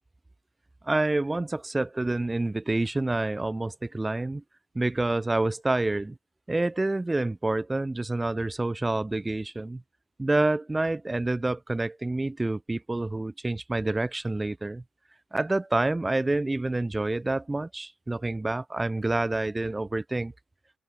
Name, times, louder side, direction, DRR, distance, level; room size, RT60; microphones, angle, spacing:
voice 1, 0.8-4.4 4.7-6.2 6.5-9.8 10.2-14.8 15.3-20.3, right 2 dB, 15° right, 1.6 m, -28 dB
open air
cardioid pair, 90°, 0 cm